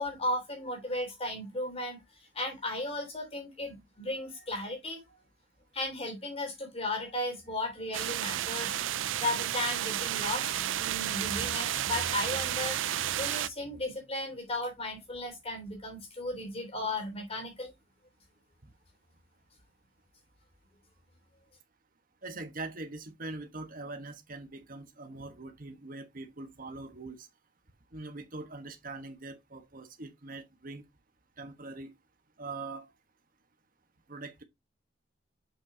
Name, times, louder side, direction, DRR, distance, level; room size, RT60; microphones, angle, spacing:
voice 1, 0.0-2.0 2.3-5.0 5.7-17.7, left 1 dB, 30° left, 3.2 m, -35 dB
sound 1, 7.9-13.5, right 12 dB, 90° right, 0.4 m, -32 dB
voice 2, 22.2-27.3 27.9-30.8 31.4-31.9 32.4-32.9 34.1-34.4, right 3 dB, 50° right, 1.3 m, -42 dB
7.1 x 5.9 x 2.8 m
head